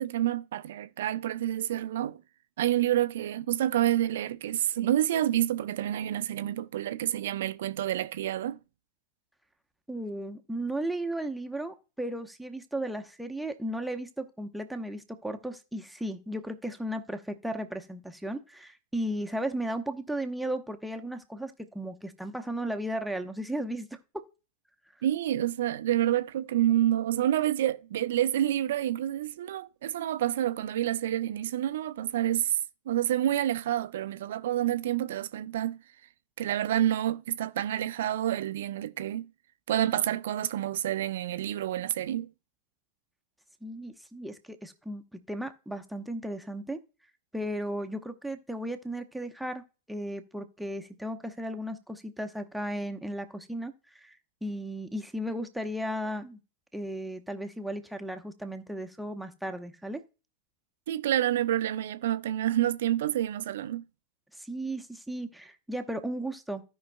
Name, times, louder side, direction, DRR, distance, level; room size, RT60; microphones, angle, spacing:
voice 1, 0.0-2.2 2.6-8.6 25.0-32.6 32.9-35.8 36.4-39.3 39.7-42.3 60.9-63.8, right 12 dB, 60° right, 0.4 m, -28 dB
voice 2, 9.9-24.2 43.6-46.8 47.3-49.6 49.9-54.2 54.4-56.4 56.7-60.0 64.4-66.6, right 1 dB, ahead, 0.9 m, -35 dB
16.0 x 5.3 x 2.2 m
figure-of-eight pair, 90°, 0 cm